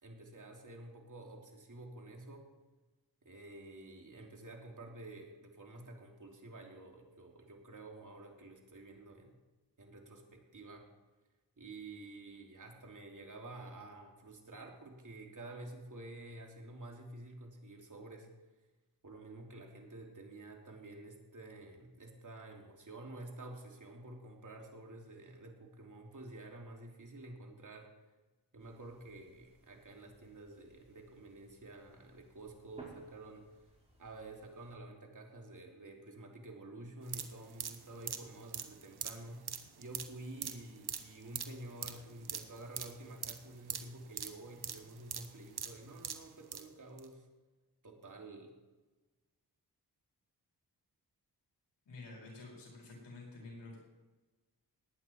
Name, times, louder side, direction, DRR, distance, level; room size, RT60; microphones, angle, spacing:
voice 1, 0.0-2.5 3.2-9.4 9.8-10.9 11.6-18.3 19.0-27.9 28.5-33.5 34.0-39.5 39.8-47.3 47.8-48.5, right 2 dB, 50° right, 1 dB, 3.1 m, -50 dB
sound 1, 28.6-34.8, right 1 dB, 15° right, 5.2 m, -61 dB
sound 2, 37.0-46.7 47.0-47.1, right 7 dB, 65° right, 1.2 m, -43 dB
voice 2, 51.9-53.8, left 2 dB, 85° left, -3 dB, 4.8 m, -50 dB
19.0 x 9.1 x 4.6 m, 1.2 s
cardioid pair, 45°, 41 cm